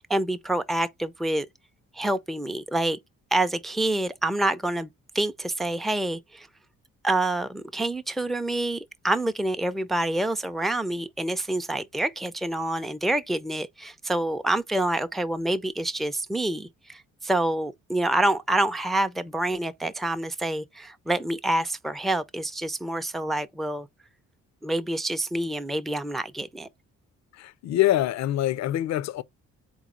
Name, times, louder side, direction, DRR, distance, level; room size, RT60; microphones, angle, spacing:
voice 1, 0.0-1.5 1.9-3.0 3.3-4.9 5.1-6.5 7.0-23.9 24.6-26.7, right 1 dB, ahead, 0.4 m, -27 dB
voice 2, 27.4-29.2, left 13 dB, 65° left, 0.5 m, -24 dB
4.1 x 3.0 x 3.7 m
cardioid pair, 90°, 30 cm